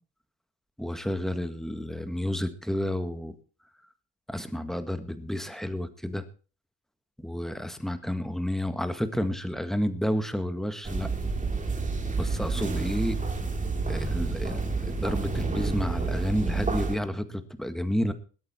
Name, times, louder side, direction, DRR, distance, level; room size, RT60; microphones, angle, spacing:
voice 1, 0.8-3.3 4.3-6.2 7.2-11.1 12.2-13.2 13.9-18.1, equal, ahead, 9 dB, 1.8 m, -30 dB
sound 1, 10.8-17.0, right 4 dB, 25° right, 2.6 m, -29 dB
21.0 x 8.7 x 4.4 m, 0.37 s
cardioid pair, 90°, 30 cm